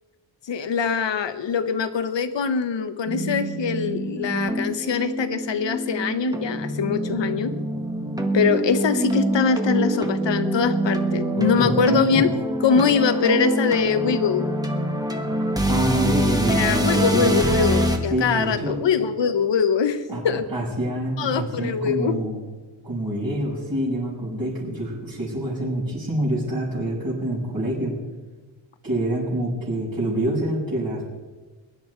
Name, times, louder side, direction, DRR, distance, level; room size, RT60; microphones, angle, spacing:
voice 1, 0.4-7.5 8.3-12.3 12.6-14.5 16.5-20.5 21.2-22.2, left 6 dB, 65° left, 10 dB, 1.2 m, -23 dB
sound 1, 3.0-18.0, right 1 dB, 10° right, 1.4 m, -25 dB
voice 2, 15.6-17.4 18.1-18.7 20.1-20.2 20.5-22.4 22.8-27.9 28.8-31.1, right 1 dB, 45° right, -8 dB, 5.7 m, -26 dB
22.5 x 10.5 x 4.6 m, 1.2 s
wide cardioid pair, 140°, 46 cm